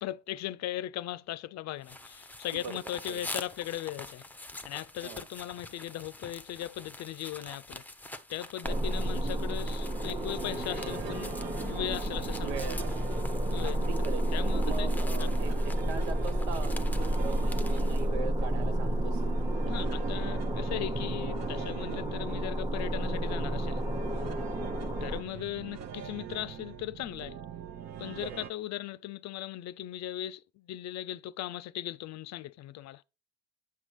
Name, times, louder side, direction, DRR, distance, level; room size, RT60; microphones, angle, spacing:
voice 1, 0.0-4.2 4.6-7.8 8.3-11.3 11.6-12.5 13.5-13.8 14.3-14.9 19.7-23.8 25.0-27.4 28.0-33.0, left 13 dB, 55° left, 0.5 m, -38 dB
sound 1, 1.8-18.1, left 2 dB, 5° left, 0.6 m, -46 dB
sound 2, 8.6-25.2, right 1 dB, 15° right, 1.0 m, -31 dB
sound 3, 10.0-28.5, right 8 dB, 55° right, 0.8 m, -44 dB
voice 2, 12.4-13.1 13.6-14.3 14.6-19.2 24.6-24.8 28.2-28.4, right 5 dB, 85° right, 0.8 m, -41 dB
7.5 x 5.8 x 3.1 m
hypercardioid pair, 55°, 33 cm